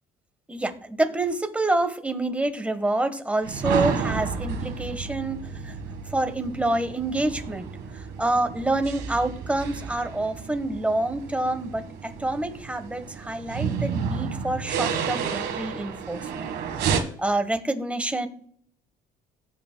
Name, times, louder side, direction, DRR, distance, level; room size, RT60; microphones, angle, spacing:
voice 1, 0.5-5.8 6.1-16.5 16.9-18.3, right 2 dB, 5° right, 8 dB, 1.2 m, -27 dB
sound 1, 3.4-17.0, right 6 dB, 80° right, 1.5 m, -31 dB
17.5 x 8.0 x 2.2 m, 0.63 s
cardioid pair, 110°, 17 cm